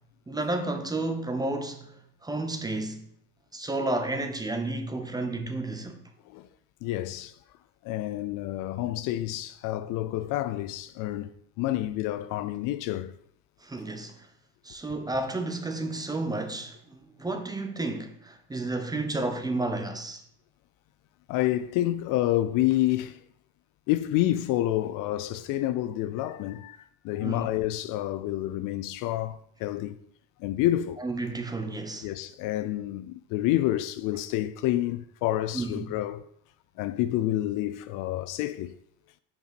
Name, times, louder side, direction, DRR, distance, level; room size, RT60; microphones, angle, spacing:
voice 1, 0.3-3.1 3.5-6.0 13.6-14.3 14.6-20.2 27.2-27.5 31.0-32.1 35.5-35.9, right 2 dB, 10° right, 0.7 m, -32 dB
voice 2, 6.8-7.4 7.8-13.2 21.3-23.2 23.9-30.0 30.4-31.0 32.0-36.2 36.8-38.8, left 14 dB, 60° left, 0.4 m, -28 dB
5.3 x 5.2 x 4.3 m
supercardioid pair, 100°, 37 cm